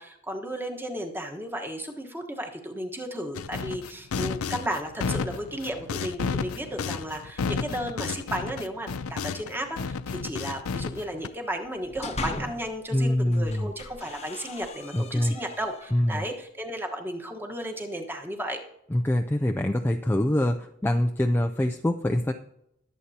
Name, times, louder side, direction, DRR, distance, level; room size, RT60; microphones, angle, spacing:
voice 1, 0.0-18.6, right 1 dB, 10° right, 2 dB, 1.3 m, -34 dB
sound 1, 3.3-9.5 9.8-11.3, left 5 dB, 85° left, 0.5 m, -32 dB
sound 2, 11.6-12.8 13.3-16.1, left 2 dB, 30° left, 0.9 m, -39 dB
voice 2, 12.9-13.7 14.9-15.4 15.9-16.2 18.9-22.3, left 1 dB, 10° left, 4 dB, 0.4 m, -24 dB
21.5 x 8.1 x 2.8 m, 0.77 s
head